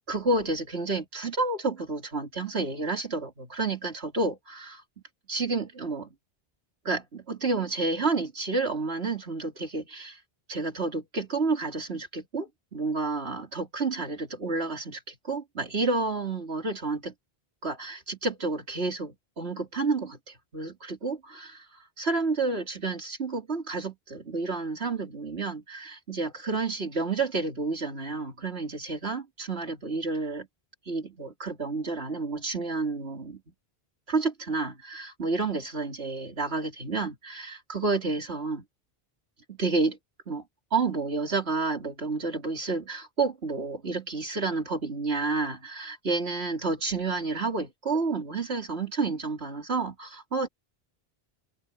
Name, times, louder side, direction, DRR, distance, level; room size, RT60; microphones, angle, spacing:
voice 1, 0.1-4.8 5.3-6.1 6.9-10.2 10.5-17.1 17.6-30.5 30.9-33.4 34.1-38.6 39.5-40.0 40.3-40.4 40.7-50.5, right 3 dB, 85° right, 3.5 m, -30 dB
omnidirectional pair, 1.1 m